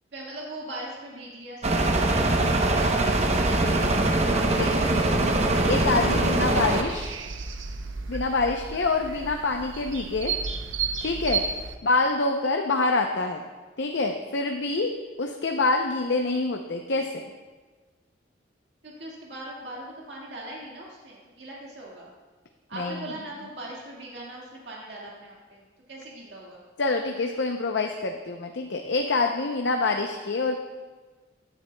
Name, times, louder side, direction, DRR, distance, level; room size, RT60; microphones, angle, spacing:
voice 1, 0.1-1.7 1.9-4.2 18.8-22.1 22.7-25.6 25.9-26.6 30.1-30.3, right 1 dB, 65° right, -4 dB, 1.8 m, -40 dB
sound 1, 1.6-6.8, right 2 dB, 35° right, 0.7 m, -22 dB
sound 2, 2.7-11.8, right 5 dB, 85° right, 0.6 m, -35 dB
voice 2, 4.5-7.1 8.1-10.3 11.0-11.4 11.8-13.4 13.8-14.9 15.2-17.2 22.7-23.1 26.8-30.6, left 3 dB, 65° left, 3 dB, 0.6 m, -26 dB
15.5 x 9.8 x 2.2 m, 1.4 s
head